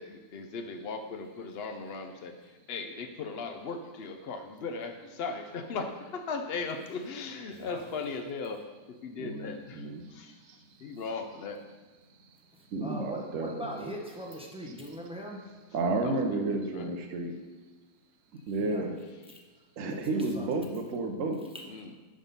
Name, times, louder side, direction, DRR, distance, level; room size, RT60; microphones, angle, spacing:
voice 1, 0.0-8.6 8.9-10.4 10.8-11.6 16.0-16.9 21.7-21.9, left 4 dB, 80° left, 6 dB, 0.5 m, -38 dB
voice 2, 9.2-10.0 12.7-14.0 15.7-17.3 18.5-19.0 19.8-21.4, right 3 dB, 60° right, 4 dB, 1.0 m, -31 dB
voice 3, 12.8-15.4 18.6-18.9 19.9-20.7, equal, 5° right, 0 dB, 0.5 m, -41 dB
9.8 x 3.7 x 5.4 m, 1.3 s
omnidirectional pair, 1.8 m